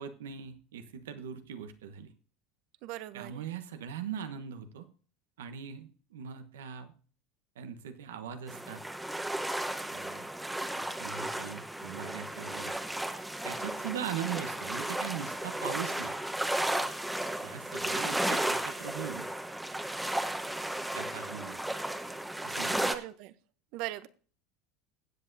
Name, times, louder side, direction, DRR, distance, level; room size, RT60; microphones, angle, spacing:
voice 1, 0.0-2.1 3.1-4.9 5.4-6.9 7.6-8.8 9.9-10.2 10.7-12.8 13.4-16.2 17.4-19.3 20.9-21.6 22.4-22.9, right 8 dB, 85° right, 8 dB, 1.1 m, -40 dB
voice 2, 2.8-3.4 22.8-23.3 23.7-24.1, right 15 dB, 65° right, 16 dB, 0.8 m, -39 dB
sound 1, 8.5-22.9, right 1 dB, 5° right, 1.1 m, -34 dB
21.0 x 7.8 x 2.7 m, 0.41 s
hypercardioid pair, 90°, 0 cm